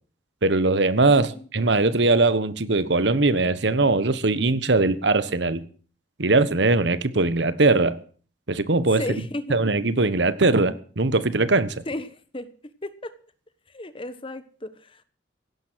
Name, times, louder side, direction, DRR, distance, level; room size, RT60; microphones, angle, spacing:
voice 1, 0.4-5.6 6.2-8.0 8.5-9.2 9.5-11.8, right 3 dB, 70° right, 1.2 m, -21 dB
voice 2, 1.0-1.5 9.0-9.5 11.9-12.5 12.8-13.1 13.7-15.0, left 1 dB, 30° left, 1.1 m, -34 dB
16.5 x 12.0 x 6.3 m
head